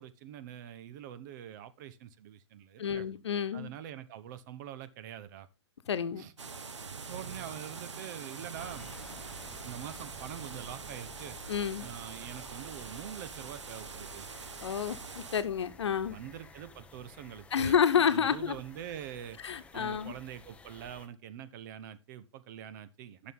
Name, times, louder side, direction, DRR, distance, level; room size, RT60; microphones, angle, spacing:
voice 1, 0.0-3.0 3.5-5.5 6.2-6.3 7.1-8.9 9.6-11.4 11.8-14.3 16.1-19.4 19.7-23.3, right 10 dB, 40° right, 1.0 m, -44 dB
voice 2, 2.8-3.7 5.9-6.2 11.5-11.9 14.6-16.2 17.5-18.6 19.4-20.1, left 7 dB, 70° left, 1.1 m, -29 dB
sound 1, 6.4-15.4, right 5 dB, 80° right, 1.3 m, -44 dB
sound 2, 8.5-21.1, left 3 dB, 10° left, 0.7 m, -54 dB
12.0 x 6.5 x 3.7 m
hypercardioid pair, 130°, 15 cm